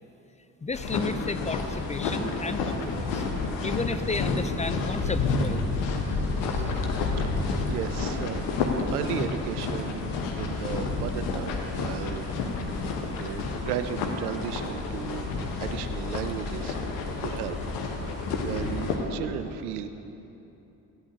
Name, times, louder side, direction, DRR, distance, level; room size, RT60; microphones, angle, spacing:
voice 1, 0.6-3.2 3.6-6.0 6.5-6.7, left 3 dB, 15° left, 10 dB, 0.5 m, -33 dB
sound 1, 0.7-19.0, left 3 dB, 75° left, 1.3 m, -30 dB
voice 2, 7.2-8.4 8.9-10.1 10.4-12.6 13.2-15.3 15.6-17.6 18.0-19.9, right 9 dB, 85° right, 10 dB, 0.6 m, -35 dB
17.0 x 11.0 x 2.9 m, 2.9 s
hypercardioid pair, 45°, 44 cm